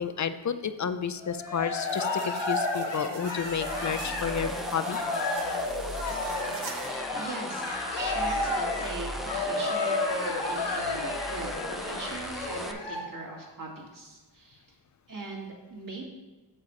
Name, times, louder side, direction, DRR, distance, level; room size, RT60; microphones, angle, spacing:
voice 1, 0.0-5.0, left 7 dB, 40° left, 11 dB, 0.5 m, -31 dB
Cheering, 1.2-13.0, left 3 dB, 65° left, 2.0 m, -32 dB
sound 1, 1.8-7.0, right 6 dB, 70° right, 0.7 m, -43 dB
sound 2, 3.4-12.7, equal, ahead, 0.7 m, -39 dB
voice 2, 7.1-14.7 15.1-16.1, right 2 dB, 45° right, -2 dB, 2.2 m, -40 dB
8.6 x 6.9 x 3.2 m, 1.2 s
cardioid pair, 60°, 45 cm